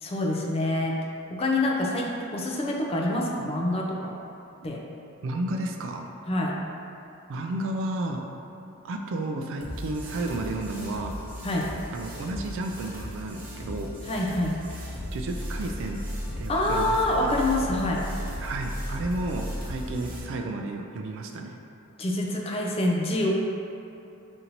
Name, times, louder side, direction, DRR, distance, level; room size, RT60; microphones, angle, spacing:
voice 1, 0.0-1.0 1.4-4.1 4.6-4.8 6.3-6.6 11.4-11.7 14.1-14.6 16.5-18.1 22.0-23.3, left 1 dB, 30° left, -1 dB, 0.4 m, -26 dB
voice 2, 5.2-6.1 7.3-8.3 8.8-11.2 11.9-13.9 15.1-16.0 16.4-17.4 18.4-21.6, right 2 dB, 60° right, 3 dB, 0.3 m, -32 dB
sound 1, 9.6-20.2, equal, 40° right, 0.9 m, -36 dB
5.0 x 2.7 x 2.9 m, 2.8 s
head